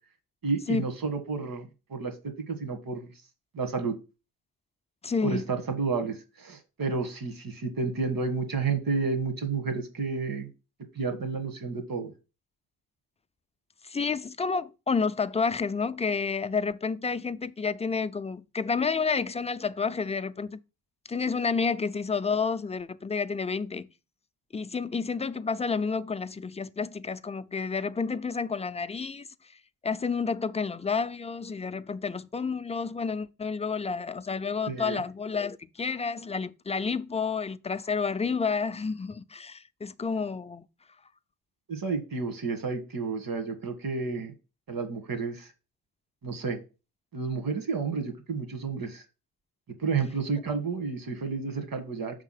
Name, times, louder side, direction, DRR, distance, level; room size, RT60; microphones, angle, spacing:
voice 1, 0.4-3.1 3.5-3.9 5.2-10.5 11.0-12.1 34.7-35.0 41.7-44.3 44.7-45.5 46.2-46.6 47.1-49.0 49.8-52.2, right 4 dB, 65° right, 1.8 m, -31 dB
voice 2, 5.0-5.4 13.8-20.6 21.1-23.9 24.5-29.3 29.8-40.6, left 5 dB, 15° left, 0.4 m, -30 dB
5.8 x 3.6 x 5.7 m
cardioid pair, 70°, 38 cm